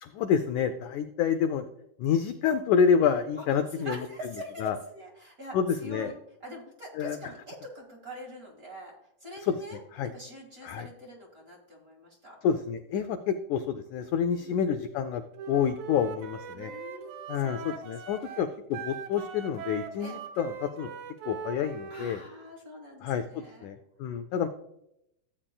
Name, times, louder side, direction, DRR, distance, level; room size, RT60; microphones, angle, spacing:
voice 1, 0.0-1.7 2.0-4.1 4.6-4.8 5.5-6.1 6.9-7.2 9.4-9.6 9.9-10.1 10.6-10.9 12.4-15.2 15.5-16.7 17.3-20.9 21.2-22.2 23.0-24.5, left 7 dB, 85° left, 8 dB, 1.7 m, -28 dB
voice 2, 3.8-6.1 6.4-12.4 14.4-14.6 16.5-17.9 18.2-18.5 20.0-20.2 21.9-23.7, equal, 35° right, -2 dB, 1.8 m, -44 dB
Wind instrument woodwind instrument, 15.4-22.2, right 6 dB, 70° right, 1.9 m, -41 dB
15.0 x 8.7 x 2.2 m, 0.79 s
omnidirectional pair, 4.0 m